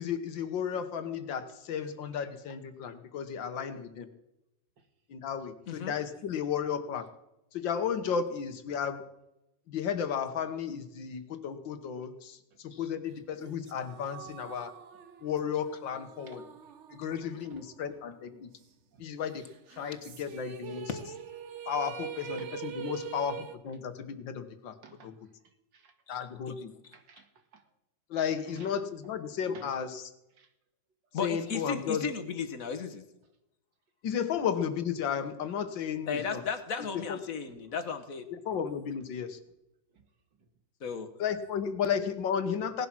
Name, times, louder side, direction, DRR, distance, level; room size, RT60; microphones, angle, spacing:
voice 1, 0.0-4.1 5.1-7.1 7.5-9.0 9.7-14.7 15.2-16.4 16.9-18.5 19.0-19.4 19.8-20.9 21.7-24.8 25.0-25.1 26.1-26.7 28.1-30.1 31.2-32.1 34.0-36.4 36.8-37.2 38.3-39.4 41.2-42.9, left 7 dB, 80° left, 10 dB, 1.9 m, -33 dB
sound 1, 13.4-18.0 18.3-18.4 19.7-23.6, right 7 dB, 50° right, 1.0 m, -43 dB
voice 2, 16.3-16.7 17.2-17.6 18.9-19.0 19.4-19.5 19.8-20.4 20.7-20.8 22.2-22.5 22.7-22.9 23.3-23.4 24.8-25.2 25.4-25.9 26.9-27.7 28.5-28.8 29.5-29.8 30.4-30.5 37.5-37.6 38.5-38.6 39.9-40.0 40.8-40.9, right 5 dB, 75° right, 6 dB, 2.4 m, -56 dB
voice 3, 31.1-33.0 36.1-38.2 40.8-41.1, left 6 dB, 50° left, 8 dB, 1.7 m, -35 dB
18.0 x 11.0 x 6.1 m, 0.89 s
omnidirectional pair, 2.0 m